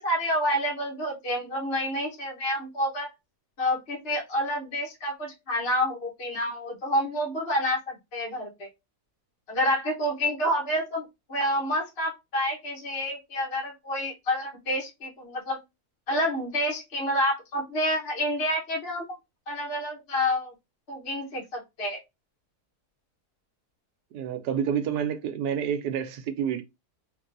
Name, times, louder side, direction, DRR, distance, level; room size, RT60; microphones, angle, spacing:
voice 1, 0.0-3.1 3.6-8.7 9.5-11.0 11.3-15.6 16.1-19.0 19.5-20.5 20.9-22.0, equal, 45° left, 1.2 m, -28 dB
voice 2, 24.1-26.6, right 8 dB, 80° right, 1.2 m, -28 dB
3.7 x 2.6 x 2.5 m
omnidirectional pair, 1.7 m